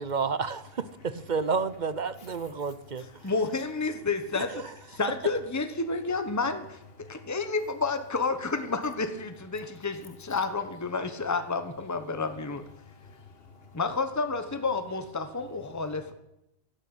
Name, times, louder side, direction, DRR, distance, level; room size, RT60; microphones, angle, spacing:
voice 1, 0.0-3.1 4.5-4.6, right 5 dB, 45° right, 15 dB, 0.8 m, -30 dB
voice 2, 2.1-3.3 7.0-7.3 12.8-13.8 15.7-16.0, left 4 dB, 55° left, 6 dB, 2.1 m, -52 dB
voice 3, 3.2-6.8 7.1-12.6 13.7-16.1, left 4 dB, 15° left, 9 dB, 1.1 m, -30 dB
12.5 x 12.0 x 9.0 m, 0.87 s
omnidirectional pair, 1.2 m